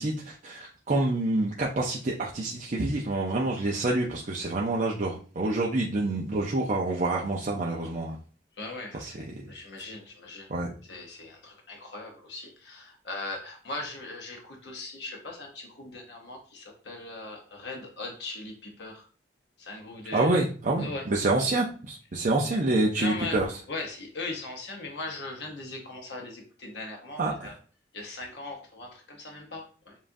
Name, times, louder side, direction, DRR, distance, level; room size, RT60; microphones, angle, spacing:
voice 1, 0.0-8.2 8.9-9.1 10.5-10.7 20.1-23.5 27.2-27.5, right 2 dB, 45° right, -3 dB, 0.6 m, -27 dB
voice 2, 8.6-9.2 9.5-10.5 10.8-19.1 19.6-20.3 20.8-21.1 23.0-23.4 23.7-27.5 27.9-30.0, left 2 dB, 75° left, 1 dB, 0.9 m, -39 dB
7.1 x 2.5 x 2.6 m, 0.40 s
head